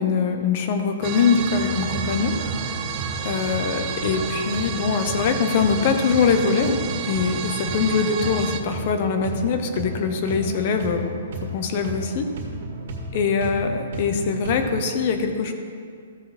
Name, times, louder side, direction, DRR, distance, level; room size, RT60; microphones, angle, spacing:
voice 1, 0.0-2.4 3.2-11.2 11.5-12.3 13.1-15.5, left 5 dB, 45° left, 6 dB, 1.0 m, -23 dB
sound 1, 1.0-8.6, right 7 dB, 30° right, 0.7 m, -31 dB
sound 2, 1.6-14.9, right 1 dB, 55° right, 1.9 m, -34 dB
14.5 x 6.5 x 4.3 m, 2.3 s
hypercardioid pair, 155°, 0 cm